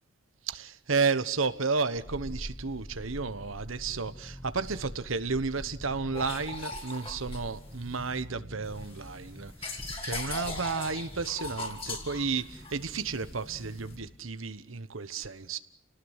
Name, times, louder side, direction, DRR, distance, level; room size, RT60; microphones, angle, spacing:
voice 1, 0.4-15.6, right 4 dB, 80° right, 1.1 m, -32 dB
sound 1, 1.9-14.3 14.6-14.7, equal, 5° left, 1.0 m, -45 dB
sound 2, 6.1-8.2 8.6-14.0, left 2 dB, 30° left, 3.5 m, -40 dB
30.0 x 19.0 x 8.1 m
head